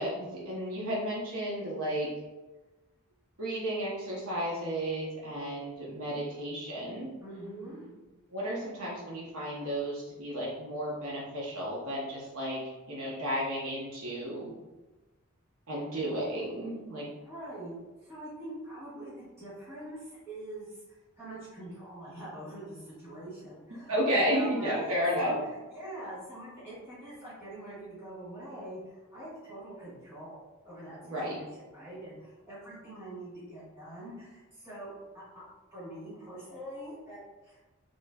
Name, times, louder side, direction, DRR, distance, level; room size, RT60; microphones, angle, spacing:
voice 1, 0.0-2.1 3.4-7.1 7.8-7.9 8.3-14.5 15.7-17.1 23.9-25.3 31.0-31.4, equal, 80° right, -5 dB, 1.0 m, -33 dB
voice 2, 7.2-7.9 17.2-20.8 21.2-23.9 24.3-25.4 25.7-31.5 31.7-35.4 35.7-37.6, right 1 dB, 10° right, -11 dB, 1.5 m, -44 dB
5.2 x 3.1 x 2.3 m, 1.1 s
head